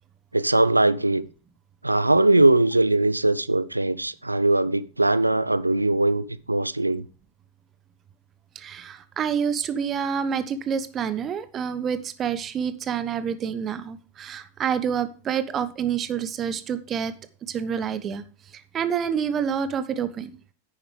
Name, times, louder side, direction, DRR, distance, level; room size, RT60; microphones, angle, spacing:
voice 1, 0.3-1.2 1.8-7.0, right 2 dB, 85° right, 0.6 m, -21 dB
voice 2, 8.5-17.1 17.5-18.2 18.7-20.4, right 7 dB, 25° right, 1.0 m, -28 dB
10.5 x 9.9 x 3.3 m
figure-of-eight pair, 90°, 0 cm